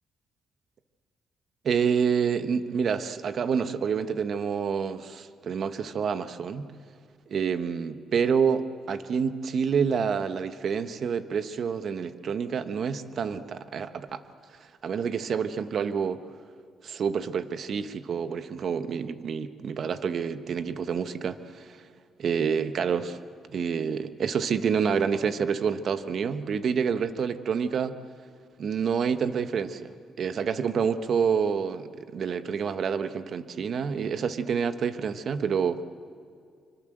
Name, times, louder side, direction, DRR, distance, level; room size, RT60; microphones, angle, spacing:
voice 1, 1.6-6.7 7.3-14.2 14.8-16.2 16.8-21.8 22.2-23.2 23.5-28.0 28.6-35.8, right 6 dB, 55° right, 11 dB, 1.2 m, -28 dB
25.5 x 24.5 x 8.0 m, 2.2 s
cardioid pair, 90°, 0 cm